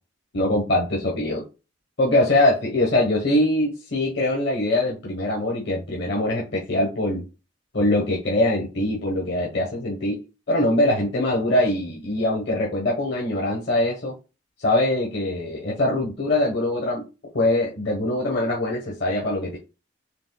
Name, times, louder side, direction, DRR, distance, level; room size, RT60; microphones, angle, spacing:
voice 1, 0.3-1.4 2.0-7.2 7.7-10.2 10.5-14.1 14.6-17.0 17.3-19.6, left 1 dB, 65° left, -3 dB, 1.1 m, -23 dB
5.1 x 3.2 x 2.2 m, 0.31 s
head